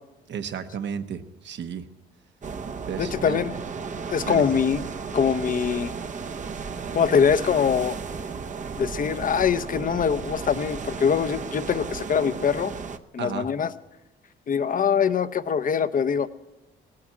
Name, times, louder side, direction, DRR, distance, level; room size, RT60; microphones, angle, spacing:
voice 1, 0.3-1.8 2.9-3.4 4.2-4.4 13.2-13.5, right 7 dB, 65° right, 9 dB, 1.2 m, -33 dB
sound 1, 2.4-13.0, right 5 dB, 40° right, 0.8 m, -34 dB
voice 2, 3.0-3.5 4.1-4.8 5.1-5.9 6.9-8.0 8.8-12.7 13.1-13.7 14.5-16.3, left 7 dB, 45° left, 13 dB, 0.8 m, -23 dB
18.0 x 8.7 x 8.8 m, 1.1 s
cardioid pair, 90°, 20 cm